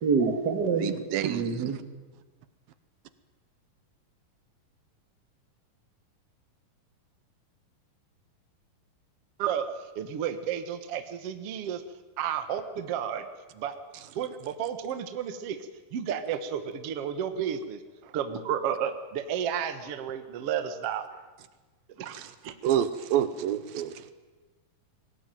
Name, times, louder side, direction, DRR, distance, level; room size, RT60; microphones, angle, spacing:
voice 1, 0.0-1.8, right 5 dB, 35° right, 6 dB, 1.9 m, -27 dB
voice 2, 0.8-1.8 22.1-22.3 22.6-24.1, right 10 dB, 80° right, 13 dB, 2.8 m, -29 dB
voice 3, 10.0-11.8 12.2-13.3 13.6-13.8 14.1-15.6 15.9-21.0 22.0-22.5, right 8 dB, 55° right, 9 dB, 1.9 m, -32 dB
22.0 x 18.0 x 9.2 m, 1.2 s
omnidirectional pair, 4.2 m